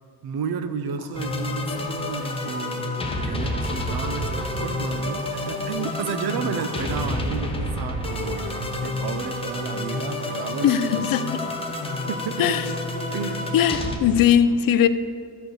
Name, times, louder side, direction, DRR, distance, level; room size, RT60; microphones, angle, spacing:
voice 1, 0.2-11.0 12.1-12.5 13.1-13.5, right 6 dB, 65° right, 10 dB, 0.8 m, -32 dB
sound 1, 0.8-1.3 2.1-2.7 3.5-3.8 5.0-5.5 6.5-6.9, right 2 dB, 40° right, 1.7 m, -47 dB
sound 2, 1.1-14.0, left 1 dB, 15° left, 0.8 m, -29 dB
voice 2, 10.6-11.2 12.4-12.7 13.5-14.9, left 9 dB, 55° left, 12 dB, 0.5 m, -19 dB
13.0 x 4.5 x 6.5 m, 2.4 s
cardioid pair, 170°, 40 cm